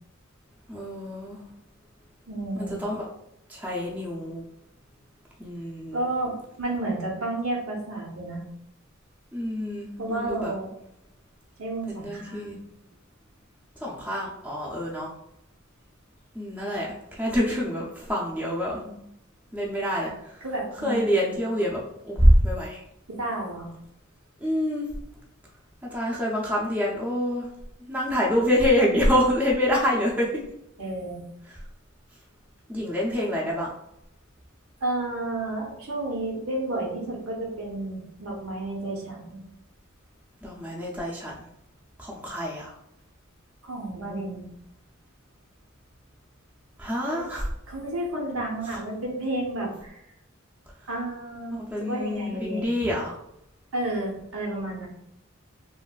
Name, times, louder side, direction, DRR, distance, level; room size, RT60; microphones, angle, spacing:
voice 1, 0.7-1.4 2.6-3.1 3.5-4.4 5.4-6.0 9.3-10.5 11.9-12.6 13.8-15.1 16.3-18.9 19.5-20.4 20.8-22.8 24.4-24.9 25.9-27.5 27.9-30.4 32.7-33.7 40.4-41.5 42.0-42.7 46.8-47.5 51.5-53.1, equal, 10° right, -4 dB, 0.5 m, -26 dB
voice 2, 2.3-2.8 5.9-8.4 10.0-10.7 11.6-12.6 20.4-21.0 23.1-23.7 30.8-31.2 34.8-39.4 43.6-44.4 47.0-47.3 47.7-50.0 50.9-52.9 53.7-54.9, right 2 dB, 90° right, -1 dB, 0.9 m, -31 dB
3.1 x 2.5 x 2.3 m, 0.79 s
head